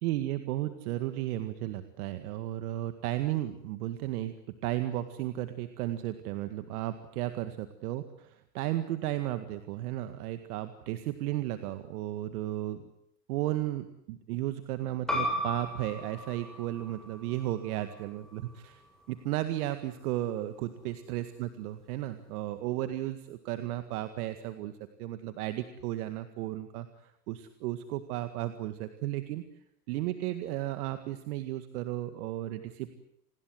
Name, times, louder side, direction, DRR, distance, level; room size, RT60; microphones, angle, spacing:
voice 1, 0.0-4.3 4.6-7.5 7.8-12.8 13.3-18.8 19.1-24.7 25.0-29.4 29.9-32.9, right 14 dB, 60° right, 9 dB, 2.0 m, -34 dB
sound 1, 15.1-20.2, left 1 dB, ahead, 7.3 m, -37 dB
28.5 x 20.5 x 7.9 m, 0.77 s
hypercardioid pair, 120°, 49 cm